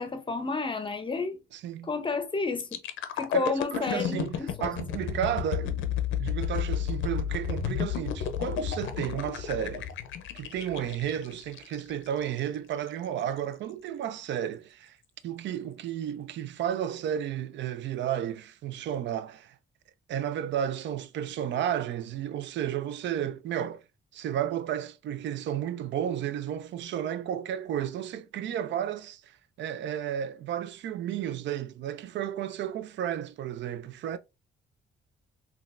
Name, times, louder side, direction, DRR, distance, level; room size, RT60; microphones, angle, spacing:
voice 1, 0.0-1.4 1.8-2.8 3.2-4.7, left 4 dB, 25° left, 0.7 m, -31 dB
sound 1, 2.6-12.4 12.9-13.1, left 9 dB, 80° left, 0.5 m, -32 dB
voice 2, 3.3-9.9 10.4-15.0 15.2-19.6 20.1-23.8 24.1-34.2, right 10 dB, 65° right, 0.4 m, -33 dB
3.8 x 2.3 x 2.5 m
cardioid pair, 90°, 20 cm